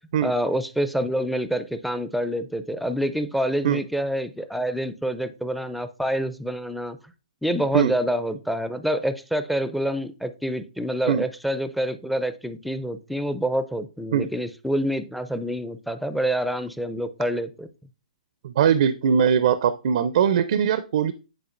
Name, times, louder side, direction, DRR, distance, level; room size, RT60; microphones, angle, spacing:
voice 1, 0.2-7.0 7.4-17.7, equal, ahead, 11 dB, 0.4 m, -27 dB
voice 2, 18.4-21.1, right 8 dB, 60° right, 13 dB, 0.4 m, -21 dB
9.9 x 3.9 x 2.5 m, 0.32 s
hypercardioid pair, 145°, 4 cm